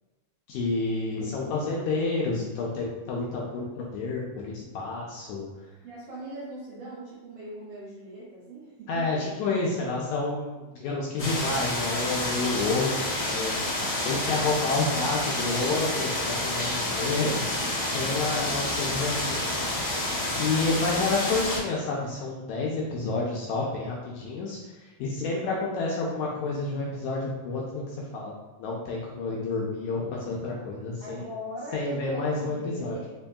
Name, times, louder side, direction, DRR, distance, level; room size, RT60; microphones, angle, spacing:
voice 1, 0.5-5.5 8.9-17.6 17.9-20.1 20.4-28.3 28.6-31.2 31.7-33.0, left 3 dB, 80° left, -4 dB, 1.8 m, -29 dB
voice 2, 5.5-9.2 14.1-14.4 31.0-33.1, right 1 dB, 65° right, -9 dB, 1.8 m, -40 dB
sound 1, 11.2-21.6, left 1 dB, 55° left, 0.9 m, -29 dB
5.2 x 2.6 x 2.2 m, 1.2 s
omnidirectional pair, 3.7 m